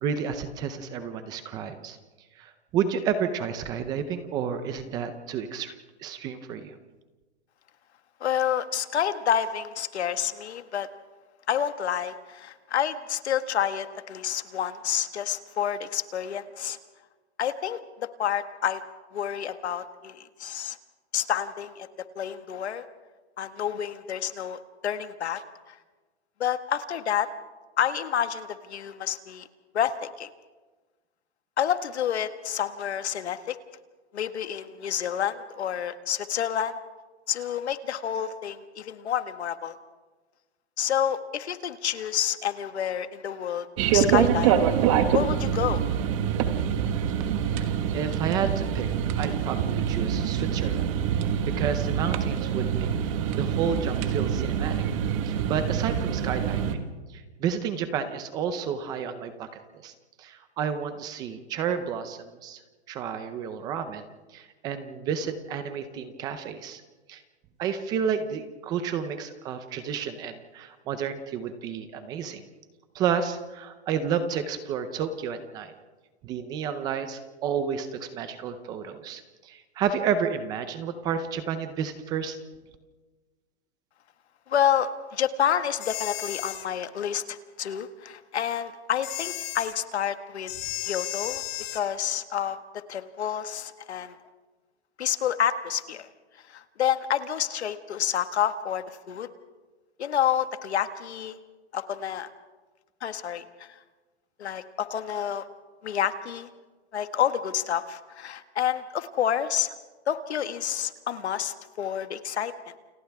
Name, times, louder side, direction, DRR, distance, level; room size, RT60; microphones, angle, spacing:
voice 1, 0.0-2.0 2.4-5.7 6.0-6.7 47.9-48.9 49.2-50.8 51.6-54.8 55.2-56.8 57.1-59.5 59.8-59.9 60.2-62.6 62.9-64.1 64.3-66.8 67.1-67.2 67.6-72.4 72.9-75.7 76.2-82.4, right 7 dB, 10° right, 10 dB, 0.6 m, -31 dB
voice 2, 8.2-10.9 11.5-16.8 17.4-18.8 19.1-20.8 21.1-21.9 22.1-22.8 23.4-25.7 26.4-27.3 27.8-29.5 29.7-30.3 31.6-33.6 34.1-36.8 37.3-39.8 40.8-44.6 45.1-45.8 84.5-90.5 90.8-91.4 91.7-94.2 95.0-96.1 96.5-99.3 100.0-101.4 101.7-102.3 103.0-103.8 104.4-105.4 105.8-106.5 106.9-109.7 110.1-112.7, left 9 dB, 75° left, 10 dB, 1.6 m, -29 dB
sound 1, 43.8-56.7, right 8 dB, 30° right, 1.5 m, -25 dB
sound 2, 85.8-86.7 89.0-89.7 90.5-91.8, left 15 dB, 25° left, 1.4 m, -34 dB
29.0 x 28.5 x 3.5 m, 1.3 s
hypercardioid pair, 165°, 33 cm